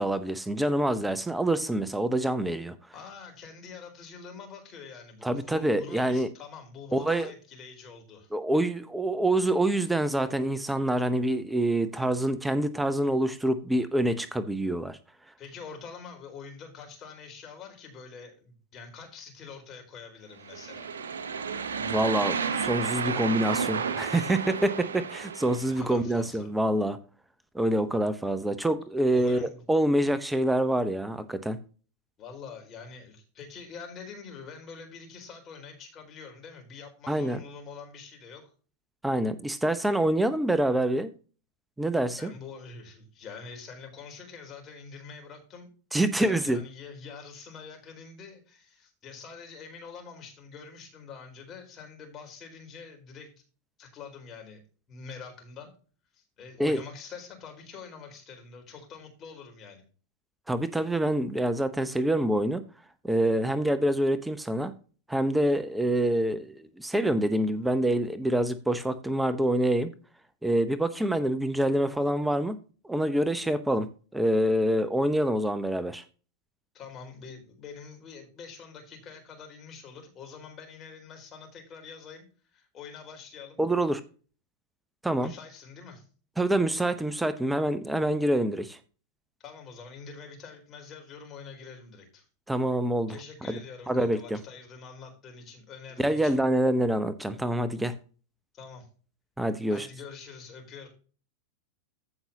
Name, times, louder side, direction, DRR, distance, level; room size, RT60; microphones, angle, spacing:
voice 1, 0.0-2.7 5.2-6.3 6.9-7.3 8.3-15.0 21.9-27.0 27.5-31.6 37.1-37.4 39.0-41.1 41.8-42.3 45.9-46.6 56.6-56.8 60.5-62.6 63.0-64.7 65.1-69.9 70.4-72.6 72.9-73.9 74.1-76.0 83.6-84.0 85.0-85.3 86.4-88.8 92.5-93.2 93.5-93.6 93.9-94.4 96.0-97.9 99.4-99.9, right 1 dB, 5° right, 0.8 m, -26 dB
voice 2, 2.9-8.3 15.4-20.9 25.7-26.5 29.1-29.6 32.2-38.5 42.2-45.7 46.1-53.3 53.8-54.6 54.9-55.7 56.1-59.8 76.7-83.6 85.2-86.0 89.4-92.2 93.1-96.4 98.5-98.9 99.7-100.9, left 5 dB, 30° left, 4.1 m, -45 dB
sound 1, 20.4-25.8, right 6 dB, 65° right, 0.9 m, -32 dB
15.0 x 5.6 x 2.8 m
figure-of-eight pair, 90°, 0 cm